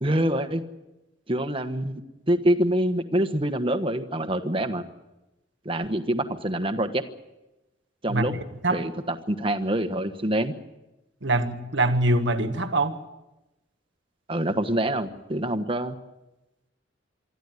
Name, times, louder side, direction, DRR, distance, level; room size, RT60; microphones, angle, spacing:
voice 1, 0.0-0.6 1.3-2.0 2.3-4.8 5.6-7.0 8.0-8.4 8.7-10.5 14.3-16.0, right 1 dB, 30° right, 8 dB, 1.3 m, -25 dB
voice 2, 11.2-12.9, right 2 dB, 70° right, 9 dB, 1.7 m, -23 dB
24.5 x 13.5 x 9.5 m, 1.0 s
head